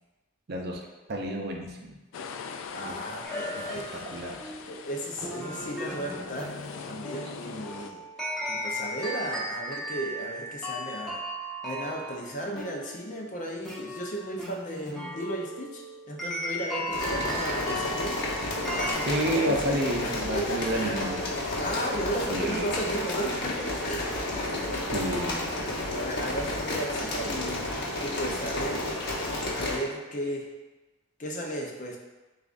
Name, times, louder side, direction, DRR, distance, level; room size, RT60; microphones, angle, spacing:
voice 1, 0.5-0.8 1.1-1.9 2.8-3.0 3.6-3.7 3.9-4.5 19.1-21.2 22.3-22.7 24.9-25.5, right 1 dB, 55° right, 0 dB, 0.5 m, -30 dB
sound 1, 2.1-7.9, left 5 dB, 75° left, 0.3 m, -41 dB
voice 2, 2.7-4.1 4.7-6.5 6.8-8.0 8.5-11.2 11.6-18.2 18.7-21.0 21.6-24.2 25.9-27.6 28.0-28.8 29.5-30.5 31.2-32.0, right 1 dB, 40° left, -1 dB, 0.6 m, -35 dB
sound 2, 3.2-18.9, equal, ahead, 0.9 m, -36 dB
sound 3, 16.9-29.8, left 1 dB, 55° left, 0.9 m, -31 dB
6.8 x 2.5 x 2.5 m, 1.1 s
head